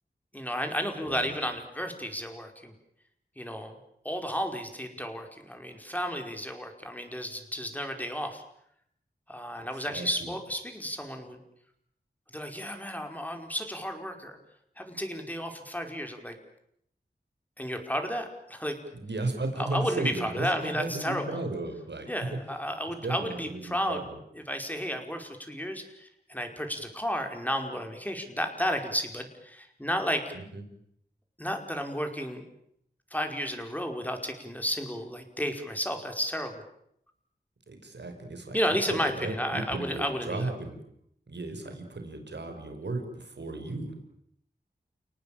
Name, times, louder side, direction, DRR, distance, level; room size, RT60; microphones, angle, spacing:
voice 1, 0.3-2.7 3.4-3.8 4.1-8.4 9.3-11.4 12.3-14.4 14.8-16.4 17.6-18.8 19.6-21.4 22.1-24.0 24.3-30.3 31.4-32.4 33.1-36.6 38.5-40.5 41.7-41.8, equal, 10° left, 5 dB, 5.1 m, -32 dB
voice 2, 9.7-10.3 18.9-22.4 23.0-24.2 30.3-30.6 37.7-40.8 41.3-43.9, right 2 dB, 85° right, 5 dB, 5.3 m, -35 dB
29.5 x 19.0 x 9.1 m, 0.73 s
wide cardioid pair, 55°, 18 cm